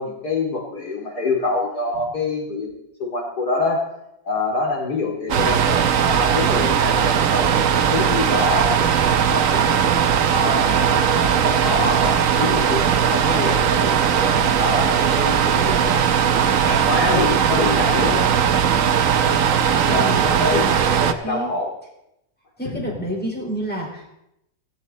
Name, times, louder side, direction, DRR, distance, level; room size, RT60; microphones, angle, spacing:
voice 1, 0.0-3.8 4.2-7.5 7.8-8.9 9.3-9.9 10.3-16.1 16.6-18.3 19.8-20.7 21.0-21.7 22.6-23.0, left 3 dB, 70° left, 0 dB, 3.1 m, -26 dB
sound 1, 5.3-21.1, right 8 dB, 55° right, 1.2 m, -18 dB
voice 2, 22.6-24.1, right 1 dB, 5° left, -3 dB, 4.7 m, -28 dB
16.5 x 16.5 x 4.2 m, 0.82 s
omnidirectional pair, 1.8 m